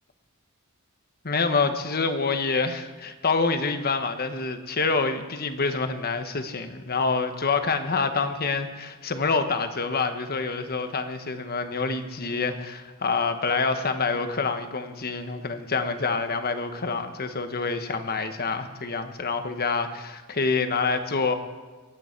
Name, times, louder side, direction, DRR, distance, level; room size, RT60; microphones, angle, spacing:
voice 1, 1.2-21.4, left 4 dB, 45° left, 8 dB, 1.2 m, -27 dB
22.5 x 9.3 x 4.5 m, 1.4 s
head